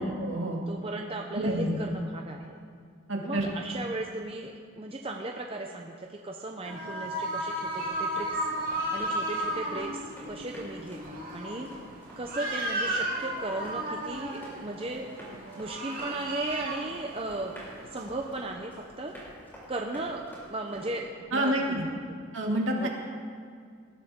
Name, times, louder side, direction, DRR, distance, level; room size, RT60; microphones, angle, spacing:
voice 1, 0.0-0.6 1.3-1.8 3.1-3.5 21.3-21.8 22.3-22.9, right 1 dB, 70° right, 0 dB, 2.2 m, -28 dB
voice 2, 0.7-2.5 3.2-8.5 8.9-11.7 12.2-15.1 15.6-17.6 17.9-18.7 19.0-19.1 19.7-22.2 22.8-22.9, right 2 dB, 25° right, 1 dB, 0.7 m, -36 dB
sound 1, 6.6-18.3, right 1 dB, 45° right, 2.6 m, -34 dB
Run, 7.6-21.0, equal, 10° left, 3.7 m, -49 dB
19.0 x 12.0 x 3.7 m, 2.2 s
head